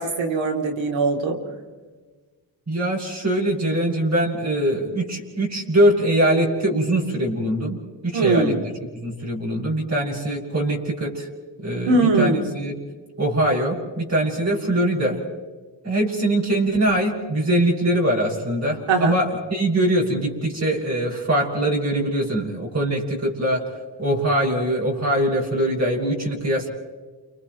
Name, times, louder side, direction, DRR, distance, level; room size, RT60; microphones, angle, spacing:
voice 1, 0.0-1.4 8.1-8.6 11.9-12.5 18.9-19.2, right 3 dB, 90° right, 3 dB, 3.2 m, -21 dB
voice 2, 2.7-7.8 8.0-8.5 9.0-11.3 11.6-12.7 13.2-15.2 15.8-23.6 24.0-26.7, right 1 dB, 35° right, -4 dB, 6.5 m, -22 dB
30.0 x 30.0 x 3.1 m, 1.3 s
cardioid pair, 90°, 45 cm